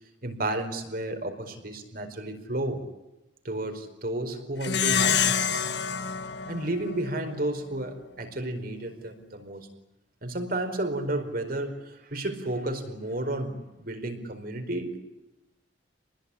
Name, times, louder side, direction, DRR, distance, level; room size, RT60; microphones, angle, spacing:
voice 1, 0.2-2.8 3.4-5.7 6.5-9.7 10.2-11.8 12.1-15.0, right 1 dB, 50° right, 6 dB, 4.8 m, -32 dB
Plucked string instrument, 4.6-7.4, left 7 dB, 60° left, 1.6 m, -27 dB
28.5 x 20.5 x 10.0 m, 0.97 s
head